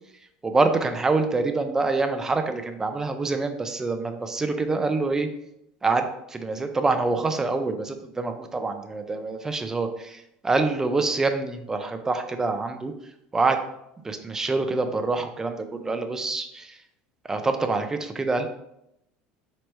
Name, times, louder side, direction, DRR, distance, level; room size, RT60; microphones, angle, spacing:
voice 1, 0.4-5.3 5.8-12.9 13.3-13.6 14.0-16.7 17.3-18.5, right 3 dB, 15° right, 7 dB, 0.4 m, -26 dB
4.5 x 2.9 x 3.2 m, 0.81 s
cardioid pair, 130°, 4 cm